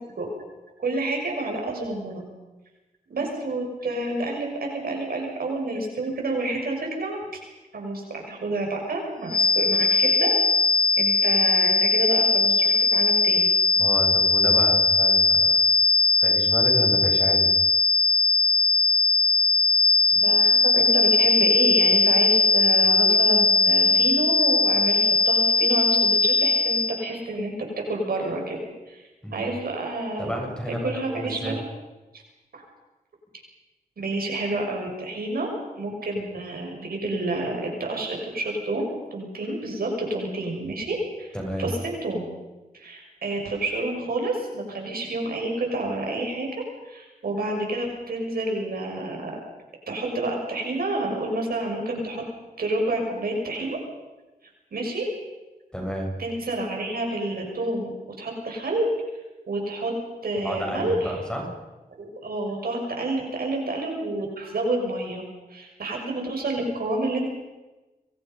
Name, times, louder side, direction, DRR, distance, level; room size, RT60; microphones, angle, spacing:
voice 1, 0.8-2.2 3.1-7.2 7.7-10.3 11.0-13.5 20.1-27.5 27.9-28.6 28.9-30.5 30.8-31.5 32.5-32.6 34.0-35.5 35.8-38.9 39.1-42.2 42.7-46.5 46.8-49.3 49.9-52.2 52.6-53.8 54.7-55.1 56.2-58.9 59.5-59.9 60.2-61.1 62.0-65.2 65.5-67.3, right 2 dB, 80° right, 1 dB, 6.5 m, -29 dB
sound 1, 9.3-27.0, left 3 dB, 70° left, 1.1 m, -19 dB
voice 2, 13.8-15.7 16.2-17.5 29.2-29.5 30.2-31.6 41.3-41.7 55.7-56.1 60.4-61.6, equal, 5° left, 0 dB, 7.8 m, -31 dB
30.0 x 24.0 x 5.5 m, 1.1 s
wide cardioid pair, 95°, 15 cm